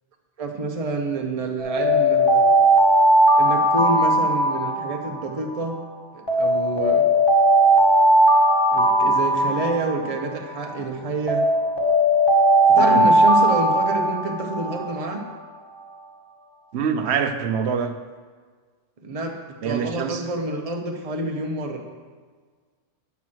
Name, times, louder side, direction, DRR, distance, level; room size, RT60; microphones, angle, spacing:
voice 1, 0.4-2.5 3.4-5.8 6.1-7.1 8.7-11.4 12.7-15.2 19.0-21.8, right 2 dB, 35° right, 0.9 m, -28 dB
Alarm, 1.6-5.7 6.3-10.7 11.3-15.1, right 1 dB, 20° left, 1.4 m, -18 dB
voice 2, 12.8-13.1 16.7-18.0 19.6-20.2, right 6 dB, 65° right, 0.9 m, -25 dB
9.1 x 5.8 x 6.2 m
omnidirectional pair, 1.2 m